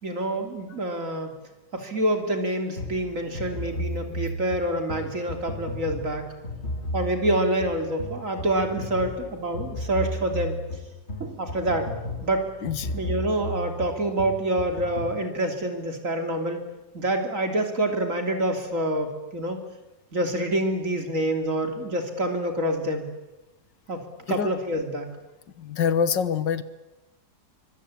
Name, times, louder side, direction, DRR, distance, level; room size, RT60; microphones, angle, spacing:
voice 1, 0.0-1.3 1.7-6.3 6.9-10.6 11.2-11.9 12.2-12.5 12.9-16.6 16.9-19.6 20.1-23.0 23.9-25.1, right 1 dB, 45° right, 5 dB, 3.4 m, -27 dB
sound 1, 2.8-15.2, equal, 35° left, 3.4 m, -34 dB
voice 2, 12.6-12.9 24.3-24.5 25.6-26.6, left 7 dB, 85° left, 14 dB, 1.9 m, -25 dB
24.0 x 23.5 x 8.6 m, 1.0 s
omnidirectional pair, 1.9 m